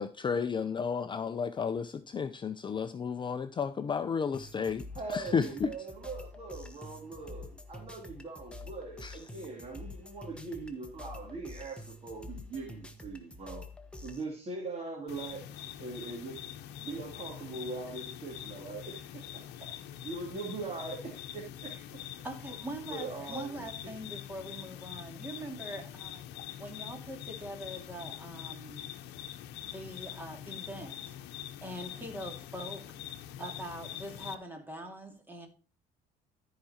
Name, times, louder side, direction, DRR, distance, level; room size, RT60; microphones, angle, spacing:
voice 1, 0.0-4.8 5.1-5.7 9.0-9.2, left 6 dB, 30° left, 0.6 m, -32 dB
sound 1, 4.3-14.2, left 2 dB, 5° left, 1.2 m, -47 dB
voice 2, 4.9-13.7 14.0-16.4 16.8-19.2 20.0-21.7 22.9-23.5 23.8-23.9, right 3 dB, 35° right, 2.7 m, -41 dB
sound 2, 15.1-34.3, left 11 dB, 85° left, 0.8 m, -44 dB
voice 3, 22.2-26.3 26.6-28.9 29.6-31.2 31.6-33.0 33.4-35.5, right 1 dB, 10° right, 2.6 m, -43 dB
13.5 x 4.9 x 4.3 m
cardioid pair, 110°, 17 cm